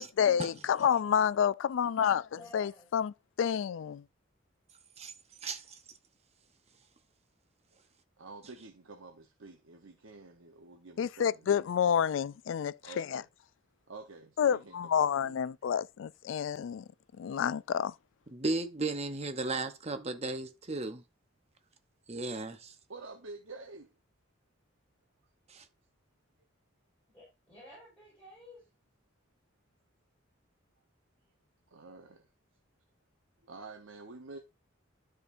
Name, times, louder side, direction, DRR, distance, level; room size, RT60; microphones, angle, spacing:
voice 1, 0.0-4.0 11.0-13.2 14.4-16.8 17.2-17.9, left 8 dB, 65° left, 0.3 m, -29 dB
voice 2, 2.3-2.9 27.1-28.6, left 1 dB, 5° left, 4.8 m, -52 dB
voice 3, 5.4-5.8 18.3-21.0 22.1-22.7 25.5-25.6, right 3 dB, 30° right, 0.9 m, -35 dB
voice 4, 8.2-11.7 12.8-13.2 13.9-15.3 22.9-23.9 31.7-32.3 33.5-34.4, right 3 dB, 80° right, 0.9 m, -49 dB
12.5 x 5.1 x 2.6 m
head